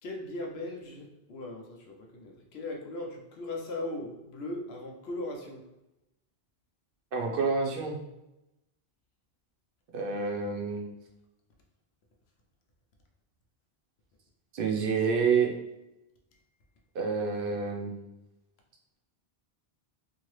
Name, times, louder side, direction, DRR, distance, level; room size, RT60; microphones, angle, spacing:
voice 1, 0.0-5.6, left 2 dB, 85° left, 1 dB, 0.9 m, -38 dB
voice 2, 7.1-8.0 9.9-10.9 14.5-15.5 16.9-18.0, right 5 dB, 65° right, 1 dB, 0.8 m, -28 dB
2.8 x 2.6 x 3.1 m, 0.92 s
omnidirectional pair, 1.0 m